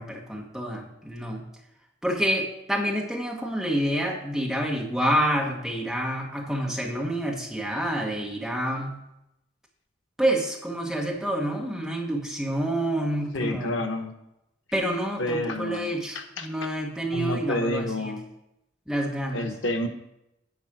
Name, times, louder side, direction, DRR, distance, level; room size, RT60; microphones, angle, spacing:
voice 1, 0.0-1.5 2.0-8.9 10.2-13.8 14.7-18.1 18.9-19.5, right 1 dB, ahead, -2 dB, 1.3 m, -28 dB
voice 2, 13.3-14.1 15.2-16.5 17.1-18.2 19.3-19.9, left 1 dB, 90° left, 5 dB, 1.0 m, -29 dB
10.0 x 4.2 x 6.1 m, 0.86 s
head